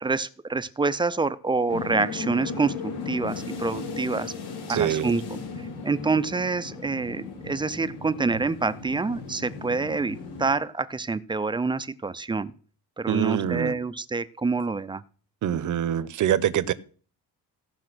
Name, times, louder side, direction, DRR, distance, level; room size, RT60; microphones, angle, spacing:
voice 1, 0.0-2.7 3.1-4.3 4.7-5.4 5.8-12.5 13.0-15.0, right 4 dB, 15° right, 0.4 m, -27 dB
sound 1, 1.7-10.5, left 4 dB, 75° left, 5.6 m, -36 dB
voice 2, 4.7-5.1 13.1-13.8 15.4-16.7, right 10 dB, 50° right, 0.8 m, -25 dB
16.0 x 5.7 x 6.1 m
cardioid pair, 145°, 38 cm